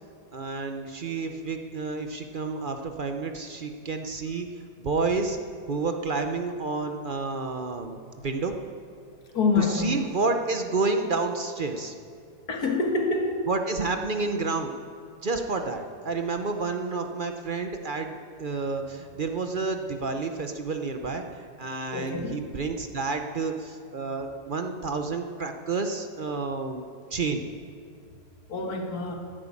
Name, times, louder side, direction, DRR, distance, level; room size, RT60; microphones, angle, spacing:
voice 1, 0.3-4.5 4.8-5.4 5.7-8.5 9.6-11.9 13.5-14.8 15.2-18.1 18.4-27.4, right 3 dB, 45° right, 5 dB, 0.7 m, -30 dB
voice 2, 9.3-9.9 12.5-13.4 21.9-22.4 28.5-29.2, left 4 dB, 70° left, 3 dB, 2.0 m, -26 dB
11.0 x 10.5 x 8.5 m, 2.4 s
omnidirectional pair, 1.7 m